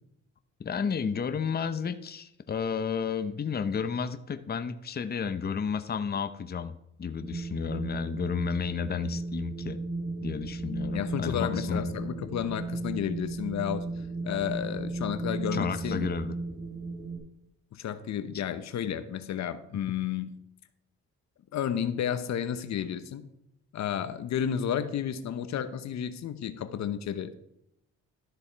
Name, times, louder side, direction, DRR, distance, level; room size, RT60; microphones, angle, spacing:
voice 1, 0.6-9.8 10.2-11.9 15.5-16.4, left 6 dB, 30° left, 10 dB, 0.8 m, -32 dB
Wind, 7.2-17.2, right 3 dB, 35° right, 4.2 m, -35 dB
voice 2, 10.9-13.9 14.2-16.1 17.7-20.3 21.5-23.3 23.7-27.3, left 9 dB, 65° left, 12 dB, 0.9 m, -32 dB
12.5 x 7.0 x 4.6 m, 0.80 s
cardioid pair, 90°, 30 cm